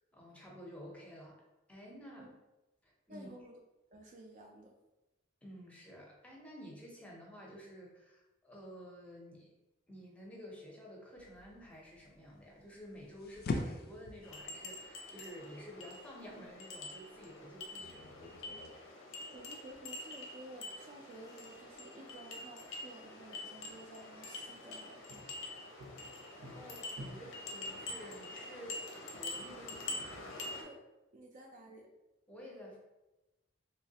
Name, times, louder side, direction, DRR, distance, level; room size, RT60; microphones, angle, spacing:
voice 1, 0.1-1.4 1.7-2.3 2.8-3.3 5.4-9.5 9.9-18.4 26.5-30.1 32.3-32.8, equal, 5° left, -3 dB, 0.6 m, -51 dB
voice 2, 3.1-3.5 3.9-4.7 19.3-25.0 30.6-30.8 31.1-31.9, right 1 dB, 40° right, 1 dB, 0.3 m, -53 dB
sound 1, 11.2-18.7, left 2 dB, 50° left, 0.3 m, -44 dB
sound 2, 14.2-30.6, left 2 dB, 85° left, 0.7 m, -46 dB
sound 3, 18.1-27.1, equal, 80° right, 0.8 m, -58 dB
3.1 x 3.0 x 2.7 m, 1.0 s
head